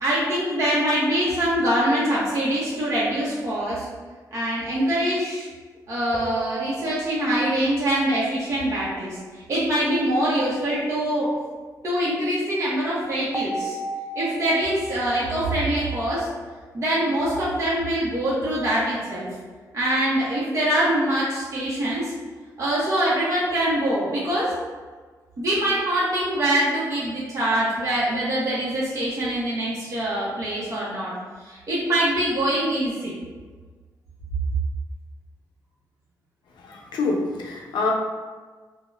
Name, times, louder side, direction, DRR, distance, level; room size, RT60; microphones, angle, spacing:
voice 1, 0.0-3.8 4.3-5.5 5.9-9.2 9.5-11.3 11.8-13.8 14.2-16.3 16.7-19.3 19.7-22.1 22.6-24.5 25.4-31.1 31.4-33.1, right 1 dB, 40° right, -8 dB, 0.8 m, -24 dB
sound 1, 6.1-7.7 13.3-16.7, right 2 dB, 10° right, 0.4 m, -35 dB
voice 2, 36.6-37.9, left 3 dB, 90° left, -1 dB, 0.5 m, -26 dB
3.5 x 2.1 x 2.3 m, 1.4 s
cardioid pair, 85°, 8 cm